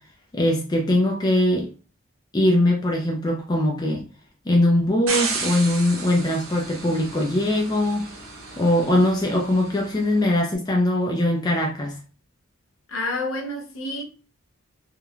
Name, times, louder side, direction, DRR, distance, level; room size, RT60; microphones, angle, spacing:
voice 1, 0.3-1.7 2.3-4.0 4.5-8.0 8.6-12.0, left 1 dB, 20° left, 0.3 m, -21 dB
sound 1, 5.1-10.2, right 4 dB, 65° right, 0.7 m, -33 dB
voice 2, 12.9-14.0, left 2 dB, 65° left, 0.6 m, -29 dB
3.0 x 2.1 x 2.4 m
head